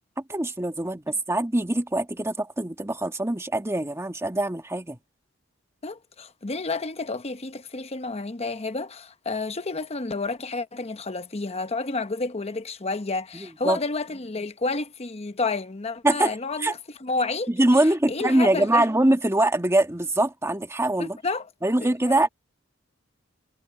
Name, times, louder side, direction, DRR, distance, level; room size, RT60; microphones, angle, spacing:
voice 1, 0.3-5.0 13.3-13.8 16.0-16.7 17.5-21.2 21.6-22.3, right 1 dB, 15° right, 1.4 m, -23 dB
voice 2, 5.8-16.7 17.0-17.5 18.1-18.9 21.0-21.5 21.8-22.2, left 3 dB, 30° left, 1.0 m, -30 dB
head